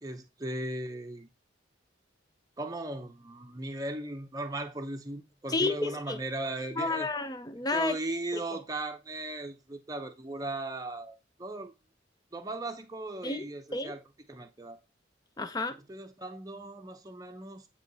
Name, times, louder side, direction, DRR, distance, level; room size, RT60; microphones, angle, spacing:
voice 1, 0.0-1.3 2.6-7.1 7.7-11.7 12.3-14.0 14.3-14.8 15.9-17.7, right 2 dB, 20° right, 0.7 m, -37 dB
voice 2, 5.5-6.2 6.8-8.0 8.3-8.6 13.2-13.9 15.4-15.8, left 3 dB, 20° left, 0.5 m, -31 dB
9.2 x 3.1 x 4.0 m
head